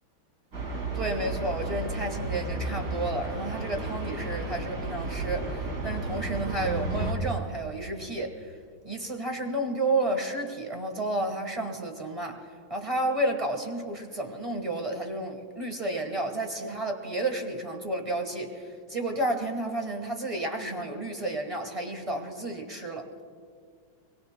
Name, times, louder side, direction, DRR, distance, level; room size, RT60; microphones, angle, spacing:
sound 1, 0.5-7.1, right 2 dB, 45° right, 2.9 m, -33 dB
voice 1, 0.9-8.5 8.8-12.4 12.7-23.1, right 2 dB, 20° right, 3 dB, 1.1 m, -31 dB
26.0 x 22.0 x 2.2 m, 2.1 s
omnidirectional pair, 2.3 m